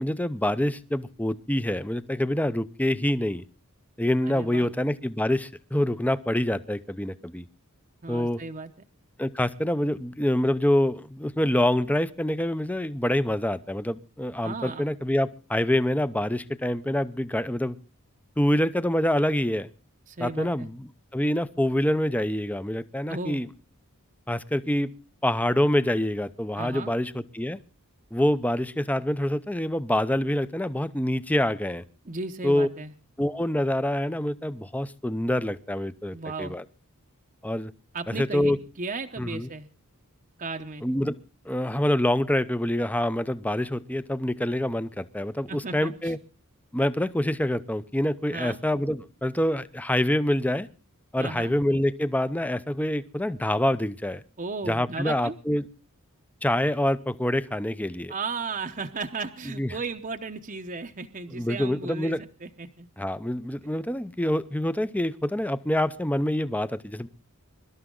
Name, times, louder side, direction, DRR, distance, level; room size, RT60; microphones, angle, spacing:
voice 1, 0.0-3.4 4.0-7.5 8.1-8.4 9.2-17.8 18.4-19.7 20.2-23.5 24.3-24.9 25.2-27.6 28.1-31.8 32.4-32.7 33.2-36.6 37.4-37.7 38.1-38.6 39.2-39.5 40.8-41.2 41.5-46.2 46.7-50.7 51.1-54.2 54.7-55.7 56.4-58.1 59.6-59.7 61.3-62.2 63.0-67.1, left 1 dB, 5° left, 14 dB, 0.6 m, -26 dB
voice 2, 4.2-4.7 8.0-8.9 14.4-14.8 20.1-20.7 23.1-23.4 26.6-26.9 32.0-32.9 36.1-36.6 37.9-38.5 38.8-39.7 40.4-40.8 45.5-46.1 48.3-48.6 51.2-51.5 54.4-55.4 58.1-62.9, right 3 dB, 35° right, 6 dB, 0.8 m, -35 dB
23.5 x 12.5 x 3.8 m, 0.35 s
head